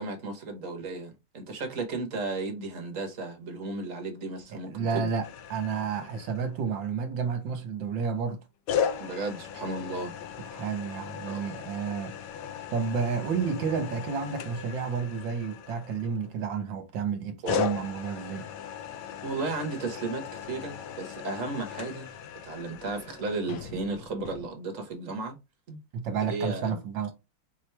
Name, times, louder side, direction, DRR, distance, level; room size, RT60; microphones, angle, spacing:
voice 1, 0.0-5.1 9.0-10.1 11.3-11.4 17.4-17.7 19.2-22.1 22.4-25.4 25.7-25.8 26.3-26.8, right 3 dB, 50° right, 1.1 m, -34 dB
voice 2, 4.5-8.4 10.5-12.1 12.7-18.5 25.9-27.1, right 6 dB, 70° right, 1.4 m, -31 dB
sound 1, 5.2-6.8 8.7-16.5 17.4-24.5, left 8 dB, 75° left, 1.2 m, -37 dB
4.5 x 3.0 x 3.3 m
omnidirectional pair, 2.3 m